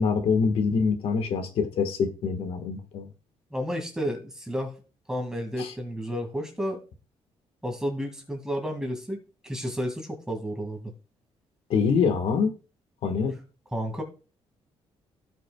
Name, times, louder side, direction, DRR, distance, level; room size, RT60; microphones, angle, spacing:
voice 1, 0.0-3.1 5.6-5.7 11.7-12.5 13.0-13.3, left 5 dB, 65° left, 1.5 m, -25 dB
voice 2, 3.5-4.7 5.1-6.8 7.6-9.2 9.4-10.9 13.7-14.0, equal, 5° right, 2.1 m, -31 dB
16.5 x 6.1 x 2.3 m
cardioid pair, 150°, 11 cm